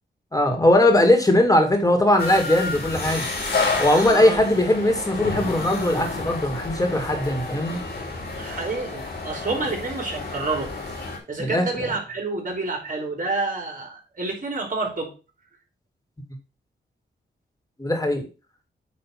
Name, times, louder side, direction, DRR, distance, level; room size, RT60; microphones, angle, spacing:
voice 1, 0.3-3.2 3.8-7.8 11.4-11.6 17.8-18.3, left 1 dB, 20° left, 4 dB, 2.4 m, -19 dB
sound 1, 2.2-11.2, left 3 dB, 60° left, 3.1 m, -30 dB
voice 2, 4.0-4.4 8.4-10.7 11.3-15.1, right 3 dB, 45° right, 1 dB, 3.1 m, -28 dB
8.6 x 3.5 x 6.0 m, 0.32 s
cardioid pair, 85°, 19 cm